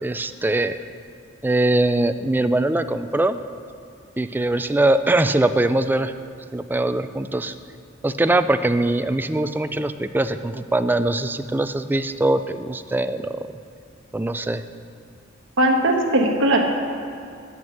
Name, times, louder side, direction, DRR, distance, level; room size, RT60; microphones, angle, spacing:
voice 1, 0.0-0.8 1.4-3.4 4.2-6.1 6.5-7.5 8.0-13.5 14.1-14.6, right 2 dB, 10° right, 10 dB, 0.3 m, -22 dB
voice 2, 15.6-16.6, right 1 dB, 70° right, 2 dB, 1.3 m, -18 dB
8.9 x 6.1 x 7.8 m, 2.4 s
head